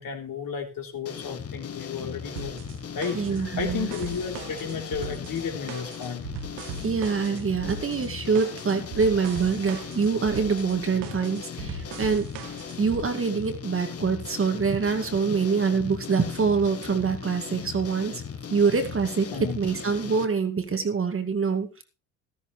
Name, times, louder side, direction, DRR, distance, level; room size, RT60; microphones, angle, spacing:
voice 1, 0.0-2.5 2.9-6.3 19.3-19.6, left 6 dB, 50° left, 2 dB, 3.7 m, -33 dB
sound 1, 1.1-20.3, left 7 dB, 35° left, 1.5 m, -38 dB
sound 2, 2.4-13.0, right 6 dB, 65° right, 1.7 m, -39 dB
voice 2, 3.1-3.9 6.8-12.3 12.8-18.2 18.5-19.3 19.5-21.8, right 5 dB, 30° right, 6 dB, 2.2 m, -25 dB
13.5 x 13.5 x 3.3 m, 0.29 s
hypercardioid pair, 55°, 43 cm